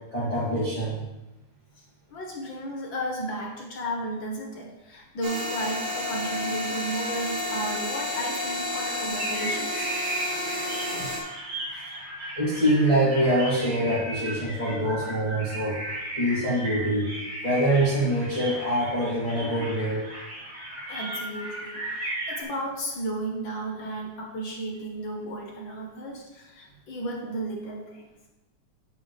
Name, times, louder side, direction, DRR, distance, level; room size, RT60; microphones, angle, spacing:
voice 1, 0.1-1.0 12.4-15.8 16.2-17.0 17.4-20.0, right 1 dB, 10° left, -10 dB, 2.3 m, -24 dB
voice 2, 1.8-9.9 11.8-11.9 20.9-28.0, right 1 dB, 50° left, -1 dB, 1.7 m, -34 dB
sound 1, 5.2-11.2, left 1 dB, 70° right, 4.9 m, -31 dB
sound 2, 9.1-22.4, right 1 dB, 30° right, 3.4 m, -36 dB
9.9 x 9.1 x 3.4 m, 1.0 s
omnidirectional pair, 3.6 m